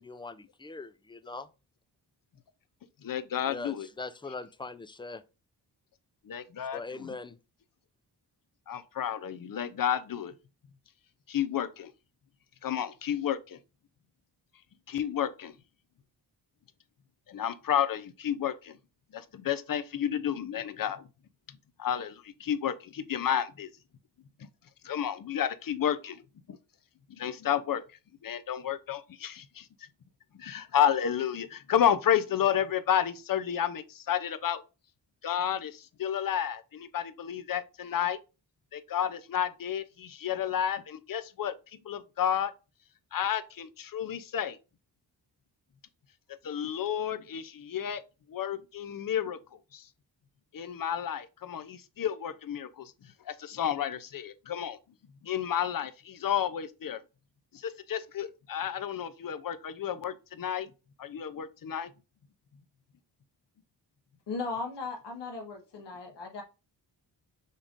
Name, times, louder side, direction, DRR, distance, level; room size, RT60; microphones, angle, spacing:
voice 1, 0.0-1.5 3.5-5.2 6.7-7.4, left 3 dB, 10° left, 0.4 m, -41 dB
voice 2, 3.0-3.9 6.2-7.2 8.7-10.3 11.3-11.9 12.6-13.6 14.9-15.6 17.3-18.8 19.1-21.1 21.5-23.7 24.4-24.5 24.8-26.2 26.5-26.6 27.1-29.9 30.3-34.6 35.2-38.2 38.7-42.5 43.1-44.6 46.4-48.0 48.3-49.9 50.5-54.8 55.2-57.0 57.5-60.7 61.0-61.9, left 9 dB, 50° left, 0.6 m, -31 dB
voice 3, 64.3-66.4, left 3 dB, 75° left, 1.2 m, -37 dB
5.4 x 3.6 x 2.5 m
cardioid pair, 50°, 43 cm